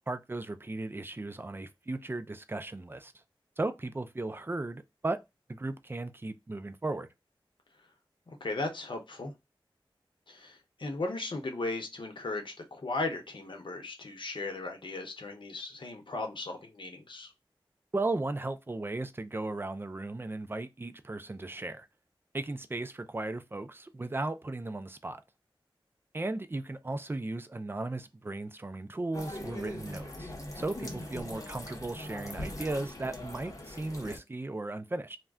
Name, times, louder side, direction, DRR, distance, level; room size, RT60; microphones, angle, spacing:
voice 1, 0.1-3.1 3.6-5.2 5.5-7.1 17.9-21.9 22.3-25.2 26.1-35.2, right 2 dB, 25° right, 0.4 m, -36 dB
voice 2, 8.4-9.3 10.3-17.3, left 2 dB, 65° left, 0.8 m, -36 dB
sound 1, 29.1-34.2, left 1 dB, 35° left, 0.8 m, -41 dB
2.3 x 2.1 x 3.5 m
wide cardioid pair, 50°, 9 cm